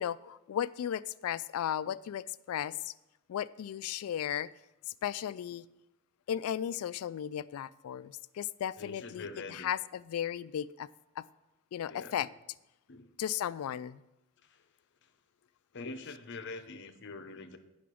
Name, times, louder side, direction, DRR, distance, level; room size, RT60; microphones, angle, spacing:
voice 1, 0.0-2.9 3.3-4.5 5.0-5.7 6.3-10.9 11.2-11.3 11.7-12.3 13.2-14.0, left 10 dB, 80° left, 16 dB, 0.3 m, -35 dB
voice 2, 8.8-9.7 11.9-12.3 12.9-13.1 14.4-14.6 15.7-17.6, left 3 dB, 55° left, 9 dB, 0.8 m, -44 dB
8.5 x 5.9 x 6.2 m, 0.96 s
head